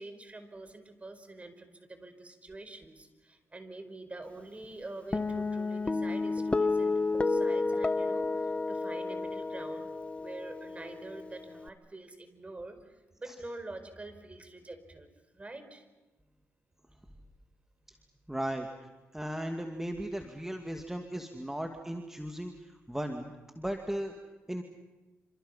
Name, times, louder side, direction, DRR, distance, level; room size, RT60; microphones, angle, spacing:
voice 1, 0.0-15.1 15.3-15.8, right 2 dB, 25° right, 8 dB, 5.1 m, -46 dB
Guitar, 5.1-11.7, left 3 dB, 25° left, 1.2 m, -31 dB
voice 2, 18.3-18.7 19.1-24.1 24.5-24.6, right 1 dB, 10° right, 4 dB, 2.4 m, -36 dB
28.5 x 27.5 x 5.8 m, 1.2 s
cardioid pair, 70°, 5 cm